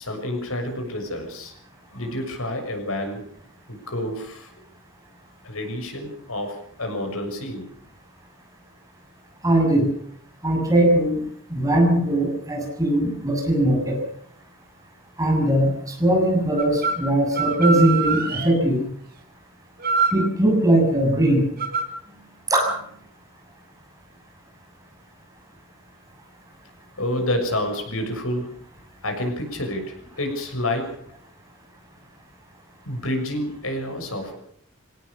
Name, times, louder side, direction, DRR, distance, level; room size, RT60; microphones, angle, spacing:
voice 1, 0.0-1.5 1.9-3.3 3.7-4.5 5.4-7.7 27.0-28.6 29.0-31.0 32.8-34.4, left 1 dB, 90° left, 5 dB, 6.6 m, -29 dB
voice 2, 9.4-9.9 10.4-11.2 11.5-14.0 15.2-18.9 20.1-21.5 22.5-22.7, right 1 dB, 15° right, 2 dB, 6.8 m, -20 dB
sound 1, 16.6-17.0 17.3-18.6 19.8-20.2 21.6-21.8, right 4 dB, 45° right, 4.0 m, -24 dB
25.0 x 17.5 x 6.7 m, 0.64 s
head